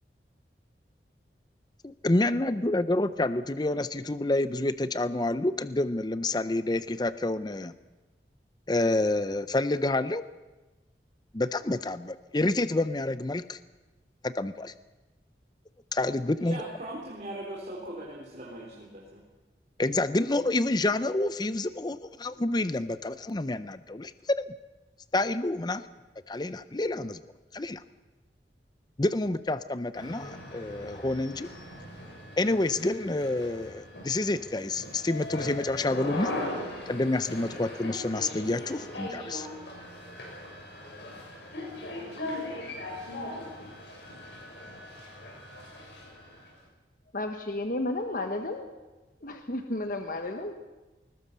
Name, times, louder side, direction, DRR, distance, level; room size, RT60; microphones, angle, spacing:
voice 1, 1.8-7.7 8.7-10.3 11.3-13.6 14.2-14.7 15.9-16.6 19.8-24.5 25.1-25.9 26.3-27.2 27.5-27.8 29.0-31.5 32.4-36.3 36.9-39.5, left 2 dB, 25° left, 13 dB, 0.6 m, -28 dB
voice 2, 16.3-19.2, right 1 dB, 40° right, -3 dB, 3.9 m, -40 dB
sound 1, 29.9-46.5, left 1 dB, 80° left, 6.9 m, -39 dB
voice 3, 47.1-48.7 49.2-50.5, left 2 dB, 50° left, 5 dB, 1.3 m, -32 dB
20.5 x 20.5 x 6.9 m, 1.1 s
head